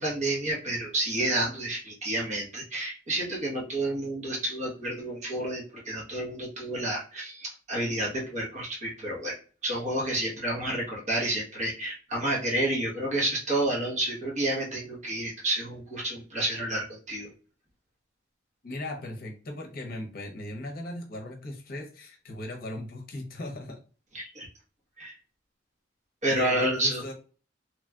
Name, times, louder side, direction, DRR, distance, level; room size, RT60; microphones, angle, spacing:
voice 1, 0.0-17.3 24.1-24.5 25.0-25.2 26.2-27.0, right 1 dB, 40° right, -3 dB, 1.0 m, -30 dB
voice 2, 18.6-23.8 26.3-27.1, left 1 dB, 50° left, 2 dB, 0.7 m, -38 dB
3.0 x 2.7 x 2.3 m, 0.39 s
head